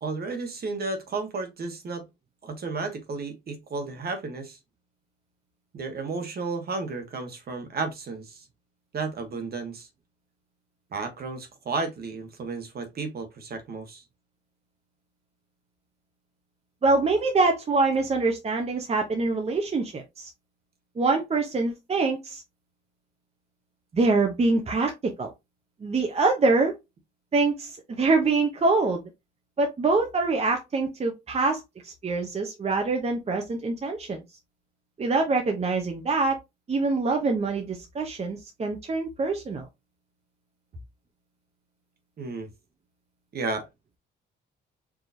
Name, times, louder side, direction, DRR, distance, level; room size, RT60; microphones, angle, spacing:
voice 1, 0.0-2.0 2.4-4.6 5.7-8.4 8.9-9.9 10.9-14.0 42.2-42.5 43.3-43.6, right 3 dB, 50° right, 1.3 m, -33 dB
voice 2, 16.8-20.3 21.0-22.4 23.9-25.3 25.8-26.7 27.3-29.0 29.6-34.2 35.0-36.4 36.7-39.7, right 3 dB, 30° right, 0.8 m, -25 dB
4.7 x 2.9 x 2.6 m
cardioid pair, 90°, 20 cm